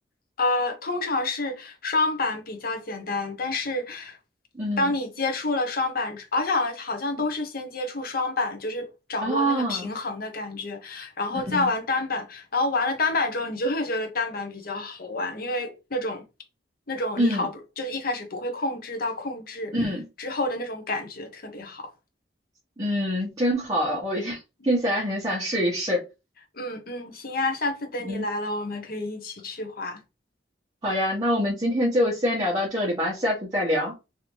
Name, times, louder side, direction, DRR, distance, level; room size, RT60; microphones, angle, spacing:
voice 1, 0.4-4.2 4.8-16.2 16.9-17.5 17.8-19.7 20.2-21.9 26.5-30.0, left 2 dB, 55° left, 0.9 m, -28 dB
voice 2, 4.5-4.9 9.2-9.9 11.3-11.7 17.2-17.5 19.7-20.0 22.8-24.4 24.6-26.0 28.0-28.3 30.8-33.9, equal, 20° right, 1.1 m, -25 dB
3.4 x 2.8 x 3.0 m
head